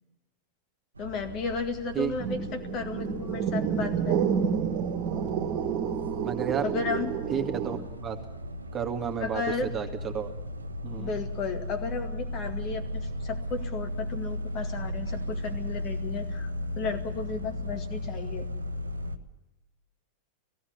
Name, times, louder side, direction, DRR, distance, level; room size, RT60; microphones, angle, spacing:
voice 1, 1.0-4.3 6.6-7.2 9.2-9.7 11.0-16.5 16.8-18.5, left 4 dB, 35° left, 6 dB, 2.1 m, -34 dB
sound 1, 1.0-19.2, left 1 dB, 75° right, 1.1 m, -36 dB
sound 2, 2.2-7.8, right 7 dB, 40° right, 2.1 m, -29 dB
voice 2, 6.2-6.7 7.3-8.2 8.7-10.3 10.8-11.1, right 7 dB, 25° right, 4 dB, 2.2 m, -32 dB
17.5 x 16.5 x 9.4 m, 1.1 s
figure-of-eight pair, 90°, 0 cm